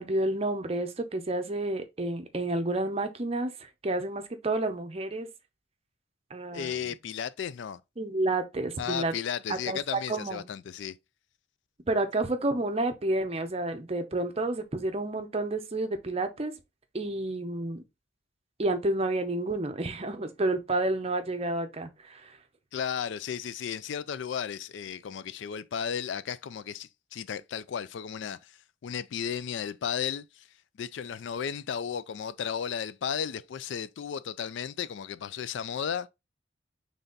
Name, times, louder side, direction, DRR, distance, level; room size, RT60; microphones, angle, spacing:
voice 1, 0.0-5.3 6.3-6.9 8.0-9.1 9.5-10.5 11.9-16.5 16.9-17.8 18.6-22.4, right 2 dB, 30° right, 0.6 m, -30 dB
voice 2, 6.5-7.8 8.8-11.0 22.7-30.5 30.8-36.1, left 8 dB, 65° left, 0.3 m, -34 dB
4.0 x 3.4 x 3.8 m
head